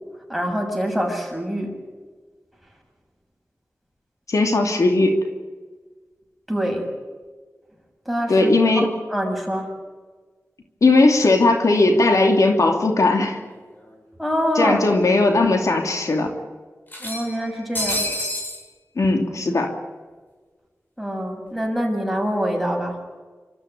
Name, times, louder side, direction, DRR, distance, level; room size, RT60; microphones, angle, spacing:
voice 1, 0.3-1.8 6.5-6.9 8.1-9.7 14.2-14.8 17.0-18.1 21.0-23.0, equal, ahead, 1 dB, 7.2 m, -25 dB
voice 2, 4.3-5.2 8.3-8.9 10.8-13.4 14.6-16.3 19.0-19.7, left 2 dB, 90° left, 3 dB, 2.7 m, -18 dB
sound 1, 13.5-13.6 13.9-14.0 15.0-15.1 15.5-15.6 16.9-18.6, left 1 dB, 35° left, 6.8 m, -28 dB
28.0 x 14.0 x 9.5 m, 1.4 s
wide cardioid pair, 70°, 5 cm